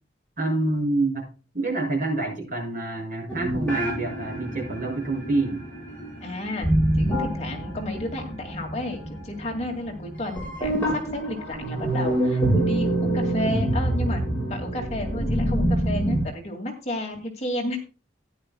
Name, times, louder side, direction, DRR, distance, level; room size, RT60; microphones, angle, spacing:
voice 1, 0.4-1.3 1.5-5.7, right 2 dB, 45° right, 0 dB, 6.6 m, -27 dB
sound 1, 3.3-16.3, right 1 dB, 10° left, 5.6 m, -26 dB
voice 2, 6.2-6.7 7.0-17.8, left 1 dB, 35° left, 2 dB, 2.4 m, -32 dB
15.5 x 10.5 x 2.3 m, 0.34 s
head